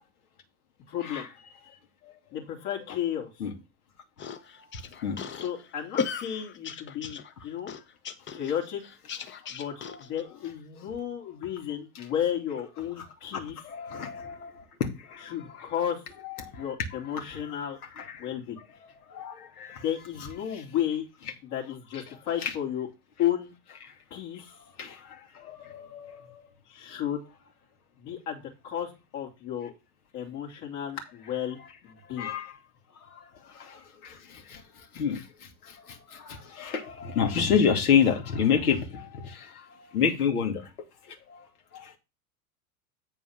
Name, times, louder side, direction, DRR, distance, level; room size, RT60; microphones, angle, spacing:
voice 1, 0.9-1.3 2.3-3.3 5.4-7.7 8.3-8.8 9.5-13.6 15.2-16.0 16.6-17.8 18.2-18.6 19.8-21.0 21.4-22.9 23.2-23.5 24.1-24.5 26.7-27.2 28.0-29.7 30.1-32.3, left 10 dB, 55° left, 3.1 m, -33 dB
sound 1, 4.2-10.2, left 6 dB, 25° left, 0.9 m, -36 dB
voice 2, 13.6-14.5 15.1-15.3 16.4-16.5 18.0-18.2 19.1-19.8 22.4-22.5 24.8-25.0 25.4-26.4 32.2-32.5 33.6-33.8 34.0-34.1 34.5-34.6 34.9-35.2 36.1-39.5 39.9-40.6 41.3-41.4, left 7 dB, 80° left, 2.5 m, -27 dB
8.2 x 4.5 x 5.9 m
hypercardioid pair, 90°, 44 cm